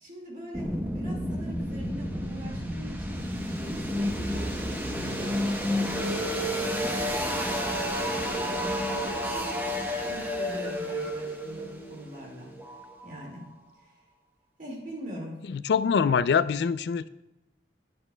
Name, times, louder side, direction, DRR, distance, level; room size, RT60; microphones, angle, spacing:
voice 1, 0.0-5.5 5.9-9.6 10.0-12.6 13.0-13.4 13.8-14.0 14.6-15.4, equal, 50° right, 2.0 m, -43 dB
sound 1, 0.5-13.4, equal, 10° right, 0.8 m, -31 dB
voice 2, 15.5-17.1, left 6 dB, 70° left, 0.3 m, -24 dB
11.0 x 9.4 x 2.2 m
head